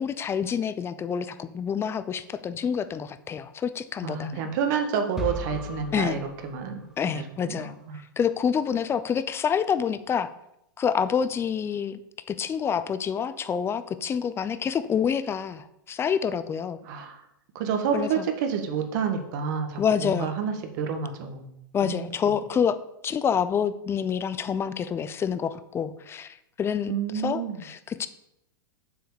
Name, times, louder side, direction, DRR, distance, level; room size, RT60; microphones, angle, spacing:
voice 1, 0.0-4.4 5.9-6.2 7.0-7.7 8.2-10.3 10.8-12.0 12.3-16.8 17.9-18.3 19.8-20.3 21.7-22.8 23.0-28.1, left 7 dB, 20° left, 13 dB, 0.6 m, -27 dB
voice 2, 4.0-8.0 16.8-17.2 17.5-21.5 21.8-22.1 26.9-27.6, right 6 dB, 55° right, 6 dB, 1.7 m, -29 dB
sound 1, 5.2-7.2, left 1 dB, 5° right, 1.3 m, -37 dB
7.6 x 4.7 x 7.0 m, 0.82 s
hypercardioid pair, 105°, 11 cm